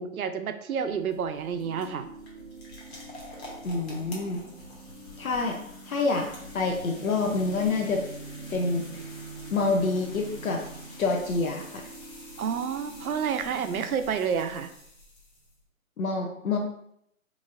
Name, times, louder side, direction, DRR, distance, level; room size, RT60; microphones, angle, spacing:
voice 1, 0.0-2.1 12.4-14.7, right 7 dB, 80° right, 9 dB, 0.6 m, -29 dB
sound 1, 0.7-15.6, left 1 dB, 50° left, 1.4 m, -47 dB
sound 2, 1.6-13.9, right 3 dB, 40° right, 0.7 m, -45 dB
voice 2, 3.6-4.4 5.2-5.6 5.9-6.3 6.5-8.0 8.5-9.0 9.5-10.6 11.0-11.9 16.0-16.6, left 3 dB, 75° left, 1 dB, 0.7 m, -27 dB
4.1 x 3.0 x 2.4 m, 0.74 s
hypercardioid pair, 165°, 42 cm